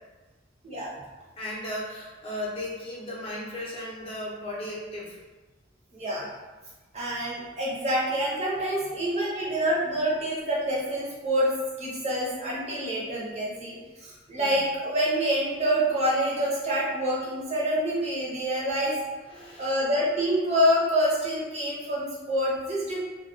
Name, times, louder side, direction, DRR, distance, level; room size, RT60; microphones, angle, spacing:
voice 1, 1.4-5.2 14.3-14.6 19.3-19.8, left 1 dB, 30° left, -6 dB, 0.6 m, -36 dB
voice 2, 5.9-6.3 6.9-11.5 11.8-19.0 19.3-23.0, equal, 35° right, -5 dB, 0.7 m, -27 dB
2.2 x 2.2 x 2.5 m, 1.2 s
head